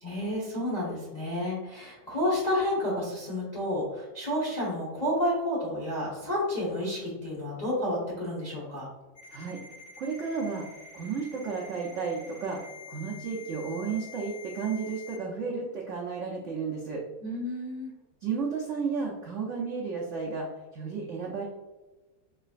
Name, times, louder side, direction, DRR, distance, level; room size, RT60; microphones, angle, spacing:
voice 1, 0.0-8.9 17.2-17.9, left 1 dB, 30° left, -6 dB, 0.9 m, -30 dB
Ringtone, 9.2-15.2, left 5 dB, 85° left, 2.5 m, -47 dB
voice 2, 9.3-10.7 10.9-17.0 18.2-21.5, right 5 dB, 80° right, -3 dB, 0.6 m, -33 dB
4.7 x 3.1 x 2.5 m, 1.1 s
omnidirectional pair, 2.1 m